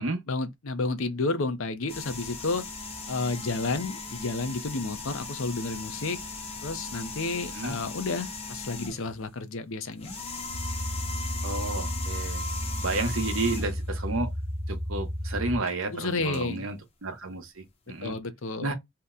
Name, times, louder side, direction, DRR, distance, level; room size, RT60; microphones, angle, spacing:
voice 1, 0.0-2.6 3.1-6.2 6.6-10.1 15.9-16.7 18.0-18.7, left 3 dB, 60° left, 0.6 m, -31 dB
sound 1, 1.9-9.2 9.9-13.9 15.7-15.8 16.3-16.4, left 3 dB, 25° left, 0.7 m, -38 dB
sound 2, 10.5-15.6, equal, 30° right, 0.6 m, -33 dB
voice 2, 11.4-12.4 12.8-14.3 14.7-18.1 18.6-18.7, right 2 dB, 65° right, 0.8 m, -31 dB
2.8 x 2.1 x 3.6 m
head